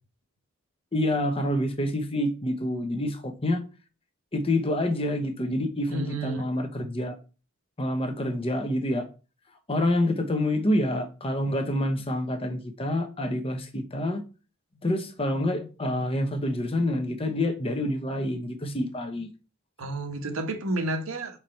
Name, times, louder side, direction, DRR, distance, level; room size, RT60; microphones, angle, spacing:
voice 1, 0.9-3.6 4.3-7.2 7.8-9.1 9.7-14.2 14.8-19.3, left 1 dB, 25° left, 0.9 m, -27 dB
voice 2, 5.9-6.5 19.8-21.4, right 2 dB, 85° right, 1.5 m, -31 dB
6.8 x 4.7 x 4.5 m
head